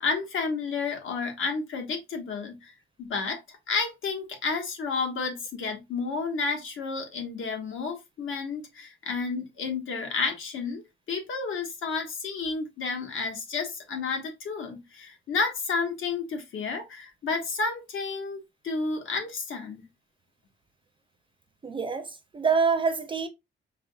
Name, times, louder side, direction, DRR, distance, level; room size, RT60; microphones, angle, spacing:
voice 1, 0.0-2.7 3.0-19.8, left 4 dB, 85° left, 1.3 m, -31 dB
voice 2, 21.6-23.3, right 5 dB, 25° right, 0.4 m, -26 dB
4.9 x 3.6 x 2.3 m
wide cardioid pair, 180°, 20 cm